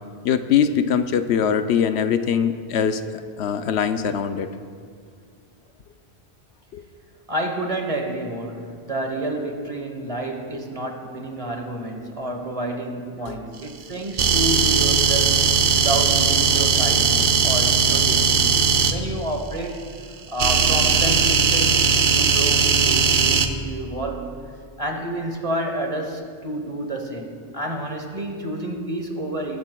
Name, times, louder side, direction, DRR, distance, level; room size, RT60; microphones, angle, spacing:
voice 1, 0.2-3.0 3.4-4.5 6.7-6.8 13.3-13.4, left 7 dB, 75° left, 9 dB, 0.8 m, -22 dB
voice 2, 7.3-18.6 18.9-19.8 20.3-24.3 24.8-29.6, right 1 dB, 35° right, 3 dB, 1.1 m, -29 dB
sound 1, 14.2-18.9 20.4-23.5, right 5 dB, 55° right, 0.8 m, -18 dB
21.0 x 10.5 x 2.3 m, 2.2 s
omnidirectional pair, 1.1 m